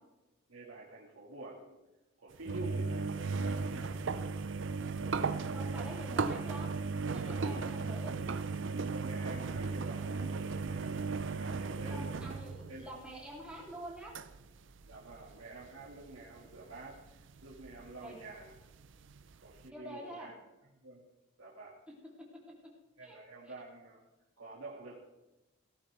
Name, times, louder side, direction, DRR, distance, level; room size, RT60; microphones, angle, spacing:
voice 1, 0.5-1.8 2.2-4.0 7.5-7.7 8.9-12.4 12.7-13.0 14.9-18.5 19.4-20.3 20.8-21.0 21.4-21.8 23.0-24.0 24.4-24.9, right 2 dB, 80° right, -5 dB, 1.9 m, -48 dB
sound 1, 2.3-14.4 14.7-19.7, right 4 dB, 60° right, 0.5 m, -36 dB
voice 2, 5.4-6.8 7.1-8.2 11.9-14.1 18.0-18.2 19.7-20.3 23.0-23.2, equal, 5° right, -5 dB, 2.8 m, -46 dB
16.5 x 13.5 x 3.3 m, 1.0 s
head